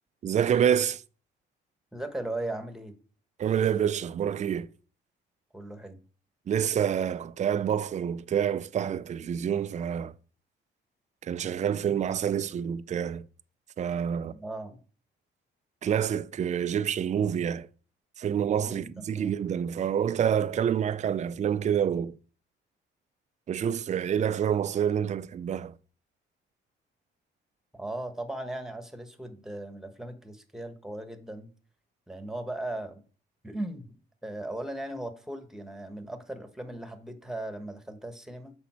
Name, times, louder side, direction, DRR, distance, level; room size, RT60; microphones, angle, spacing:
voice 1, 0.2-1.0 3.4-4.7 6.5-10.1 11.2-13.2 13.8-14.3 15.8-17.7 18.2-22.2 23.5-25.8, right 8 dB, 35° right, 0.4 m, -27 dB
voice 2, 1.9-2.9 5.5-6.0 14.2-14.8 18.6-19.3 27.7-31.5 32.1-33.0 33.4-33.9 34.2-38.5, right 1 dB, ahead, 1.3 m, -38 dB
7.1 x 5.2 x 4.4 m
cardioid pair, 90°, 20 cm